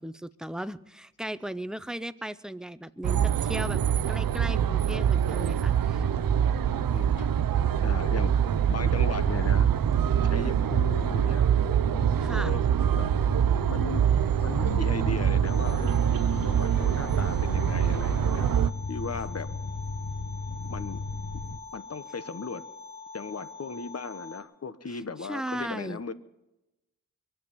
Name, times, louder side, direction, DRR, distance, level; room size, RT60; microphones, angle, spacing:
voice 1, 0.0-3.8 4.1-6.1 12.2-12.6 24.9-25.0 25.3-26.0, right 1 dB, ahead, 14 dB, 0.5 m, -36 dB
sound 1, 3.0-18.7, right 9 dB, 75° right, 0.5 m, -25 dB
sound 2, 3.6-21.6, left 4 dB, 65° left, 1.0 m, -37 dB
voice 2, 6.9-7.3 7.8-9.7 10.3-11.5 12.3-12.6 12.9-13.1 13.7-14.2 14.4-16.0 16.4-18.6 18.9-19.5 20.5-21.1 21.3-21.4 21.7-22.7 23.1-26.1, left 4 dB, 45° left, 13 dB, 0.9 m, -37 dB
sound 3, 15.4-24.4, left 4 dB, 25° left, 2.3 m, -44 dB
23.0 x 7.9 x 7.0 m, 0.97 s
wide cardioid pair, 65°, 35 cm